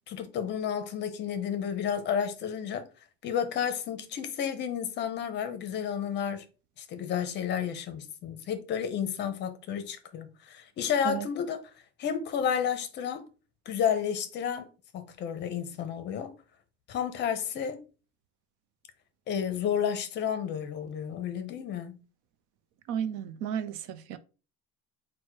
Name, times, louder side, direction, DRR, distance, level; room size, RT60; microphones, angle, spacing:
voice 1, 0.1-2.9 3.2-6.4 6.8-11.6 12.0-13.3 13.7-14.7 14.9-16.3 16.9-17.8 19.3-22.0, left 8 dB, 35° left, 0.6 m, -31 dB
voice 2, 22.9-24.2, right 8 dB, 90° right, 0.6 m, -33 dB
4.6 x 2.2 x 4.5 m
cardioid pair, 180°, 29 cm